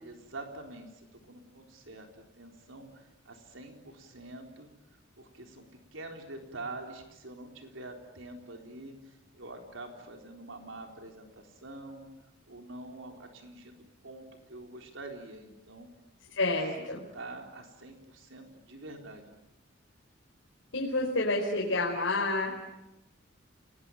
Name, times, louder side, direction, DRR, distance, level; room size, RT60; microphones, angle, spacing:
voice 1, 0.0-4.7 5.2-12.1 12.5-15.9 16.5-19.3, right 2 dB, 80° right, 3 dB, 4.0 m, -46 dB
voice 2, 16.4-17.0 20.7-22.6, left 2 dB, 80° left, -2 dB, 4.8 m, -29 dB
30.0 x 20.5 x 9.1 m, 0.93 s
head